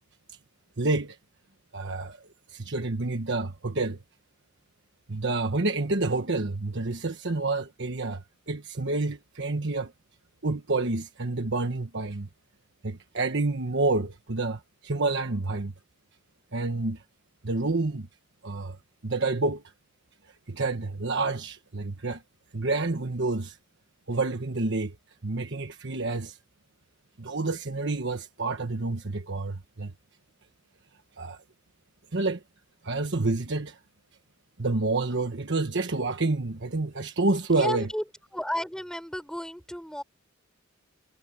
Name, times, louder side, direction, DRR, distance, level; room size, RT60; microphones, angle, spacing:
voice 1, 0.8-1.2 1.7-2.2 2.5-4.0 5.1-9.9 10.4-12.3 12.8-15.7 16.5-17.0 17.4-18.1 18.4-18.8 19.0-19.6 20.5-22.2 22.5-23.6 24.1-24.9 25.2-26.4 27.2-29.9 31.2-31.4 32.1-32.4 32.8-33.8 34.6-37.9, right 3 dB, 60° right, 1.3 m, -28 dB
voice 2, 37.6-38.0 38.3-40.0, equal, 5° left, 6.9 m, -32 dB
head